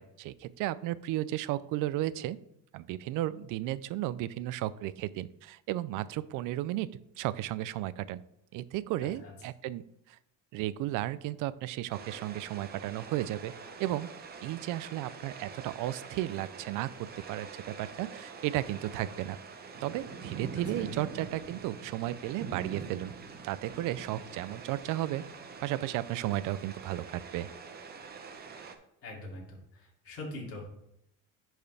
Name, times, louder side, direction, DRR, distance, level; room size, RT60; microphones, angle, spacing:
voice 1, 0.0-2.4 2.7-6.9 7.2-8.2 8.5-10.2 10.5-13.5 13.8-14.1 14.4-19.4 19.8-23.1 23.4-25.3 25.6-27.5, right 15 dB, 70° right, 17 dB, 0.5 m, -34 dB
sound 1, 11.9-28.8, right 5 dB, 30° right, 0.7 m, -45 dB
voice 2, 29.0-30.7, left 2 dB, 40° left, -4 dB, 2.6 m, -43 dB
10.5 x 4.5 x 3.3 m, 0.81 s
cardioid pair, 150°, 34 cm